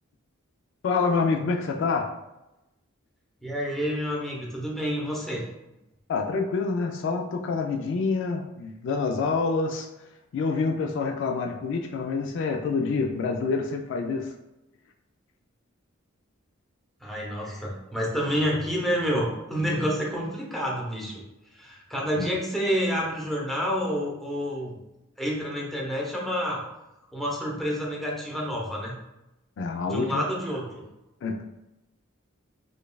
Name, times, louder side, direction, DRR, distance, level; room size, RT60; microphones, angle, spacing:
voice 1, 0.8-2.1 6.1-9.9 10.3-14.3 22.2-22.3 29.6-30.2 31.2-31.4, left 4 dB, 60° left, 3 dB, 0.3 m, -27 dB
voice 2, 3.4-5.5 17.0-21.2 21.5-24.8 25.2-26.6 27.1-29.0 29.9-30.8, equal, ahead, -4 dB, 0.7 m, -29 dB
5.0 x 2.3 x 2.3 m, 0.93 s
head